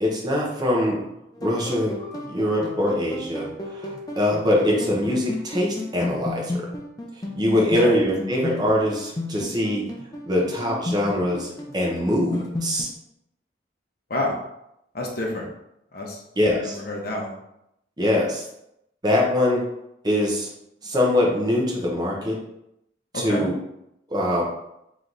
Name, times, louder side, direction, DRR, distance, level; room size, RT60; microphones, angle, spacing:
voice 1, 0.0-1.0 1.4-2.0 2.3-6.7 7.3-9.8 10.2-12.9 16.4-16.8 18.0-18.4 19.0-19.6 20.0-20.5 20.8-22.4 23.1-23.5 24.1-24.5, left 1 dB, 20° right, -2 dB, 0.8 m, -23 dB
sound 1, 1.3-12.8, left 2 dB, 20° left, 0.5 m, -33 dB
voice 2, 7.5-7.9 14.1-14.4 14.9-15.5 15.9-16.2 16.5-17.3 23.1-23.5, left 1 dB, 55° left, 0 dB, 0.8 m, -28 dB
3.3 x 3.0 x 3.9 m, 0.81 s
head